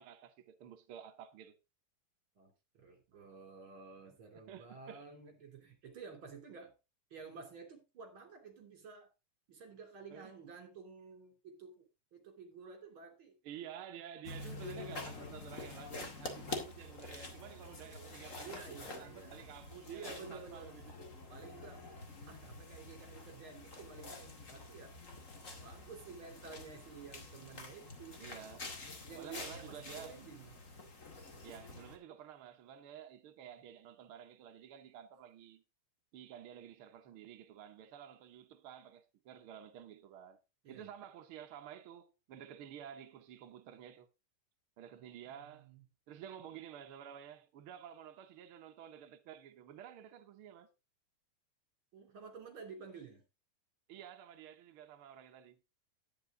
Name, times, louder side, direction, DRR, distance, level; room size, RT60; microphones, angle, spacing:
voice 1, 0.0-1.6 4.3-5.0 10.1-10.3 13.4-21.1 28.2-28.7 29.1-30.2 31.4-35.6 36.1-40.4 40.7-44.1 44.8-45.7 46.1-50.7 53.9-55.6, right 9 dB, 75° right, 1.2 m, -51 dB
voice 2, 2.4-6.7 7.1-9.1 9.5-13.4 17.7-19.5 19.9-20.8 21.3-21.8 22.3-25.0 25.6-28.2 29.1-30.5 40.6-40.9 44.9-45.8 51.9-53.2, right 5 dB, 40° right, 3.5 m, -52 dB
sound 1, 14.2-32.0, left 3 dB, 30° left, 1.8 m, -47 dB
11.0 x 9.8 x 3.7 m
omnidirectional pair, 3.8 m